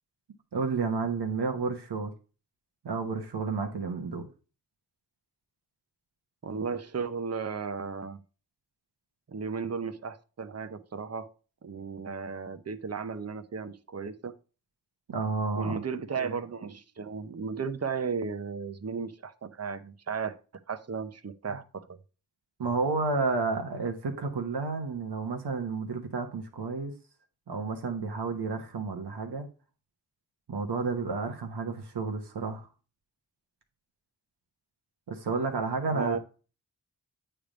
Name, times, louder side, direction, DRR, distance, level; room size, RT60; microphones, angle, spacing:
voice 1, 0.5-2.1 2.8-4.3 15.1-15.8 16.2-16.3 22.6-26.9 27.5-29.5 30.5-32.7 35.1-36.2, right 4 dB, 85° right, 1.1 m, -31 dB
voice 2, 6.4-8.2 9.3-11.3 11.6-14.3 15.6-20.4 20.7-22.0 35.9-36.2, right 5 dB, 40° right, 0.7 m, -35 dB
8.8 x 3.4 x 5.0 m
wide cardioid pair, 60°, 39 cm